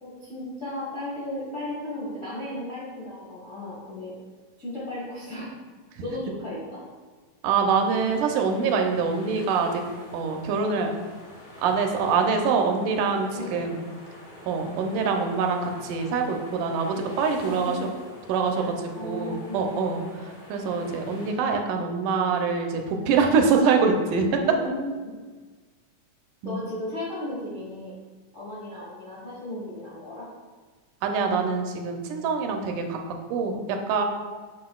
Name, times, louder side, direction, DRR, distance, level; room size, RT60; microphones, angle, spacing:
voice 1, 0.0-4.2 4.6-5.5 6.0-6.8 13.3-13.7 17.3-17.9 18.5-18.6 18.9-20.0 24.5-25.2 26.4-27.9 28.3-30.3, left 1 dB, 70° left, -7 dB, 0.7 m, -35 dB
voice 2, 7.4-9.8 10.1-10.9 11.6-13.8 14.5-17.8 18.3-18.6 19.0-20.0 20.5-24.4 26.4-26.6 31.0-33.0 33.3-34.0, right 5 dB, 85° right, 3 dB, 2.2 m, -24 dB
sound 1, 7.8-21.3, left 1 dB, 50° left, 2.5 m, -47 dB
7.6 x 5.9 x 2.3 m, 1.4 s
omnidirectional pair, 3.6 m